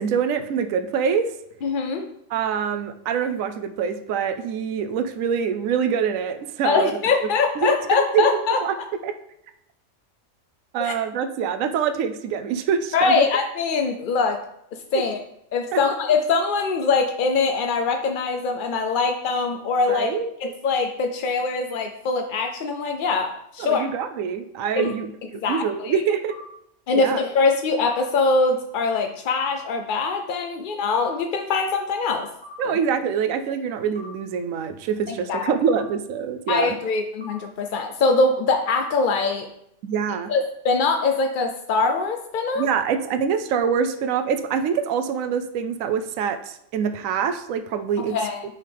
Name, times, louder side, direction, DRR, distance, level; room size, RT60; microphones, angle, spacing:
voice 1, 0.0-1.3 2.3-6.9 7.6-8.7 9.0-9.1 10.7-13.3 15.7-15.8 19.9-20.3 23.6-26.4 26.9-27.2 32.6-36.7 39.8-40.3 42.6-48.2, right 7 dB, 85° right, 9 dB, 1.0 m, -25 dB
voice 2, 1.6-2.1 6.6-8.6 10.8-10.9 12.9-14.4 14.9-15.2 15.5-20.1 20.4-23.9 24.8-24.9 25.4-26.0 26.9-32.3 32.6-32.8 35.1-35.5 36.5-39.5 40.3-42.7 48.1-48.4, left 4 dB, 60° left, 5 dB, 0.5 m, -23 dB
sound 1, 24.8-24.9 26.3-26.4 27.8-28.0 29.4-29.5 30.9-31.0 32.4-32.6 34.0-34.1 35.7-35.8 37.2-37.4, left 1 dB, 25° left, 1.0 m, -40 dB
9.5 x 5.0 x 3.4 m, 0.77 s
omnidirectional pair, 1.4 m